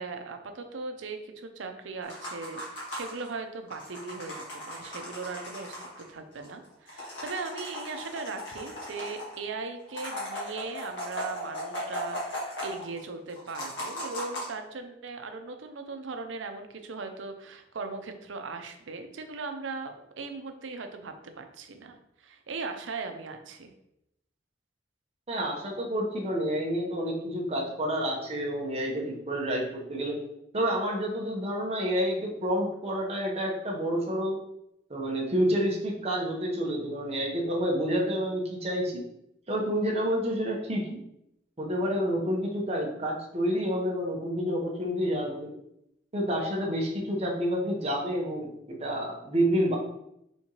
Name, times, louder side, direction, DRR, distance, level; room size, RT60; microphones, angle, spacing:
voice 1, 0.0-23.7, right 4 dB, 80° right, 6 dB, 0.6 m, -39 dB
sound 1, 2.0-3.3 3.7-6.0 6.4-6.5 6.7-9.4 9.9-13.0 13.3-14.5, left 1 dB, 75° left, 1.5 m, -37 dB
voice 2, 25.3-30.2 30.5-34.4 34.9-39.0 39.5-41.0 41.6-45.5 46.1-49.8, equal, 35° right, -2 dB, 0.8 m, -29 dB
4.4 x 3.5 x 2.9 m, 0.81 s
head